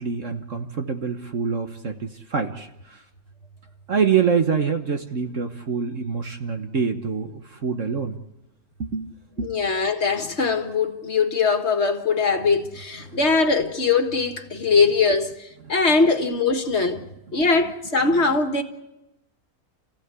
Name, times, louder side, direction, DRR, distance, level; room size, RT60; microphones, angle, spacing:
voice 1, 0.0-3.0 3.9-8.2 8.8-9.1 9.4-9.6 13.0-13.2 15.6-15.7 17.3-17.4 18.1-18.2, right 6 dB, 55° right, 1.6 m, -26 dB
voice 2, 9.4-17.0 17.3-18.6, left 4 dB, 45° left, 1.9 m, -21 dB
29.0 x 16.5 x 8.3 m
omnidirectional pair, 1.6 m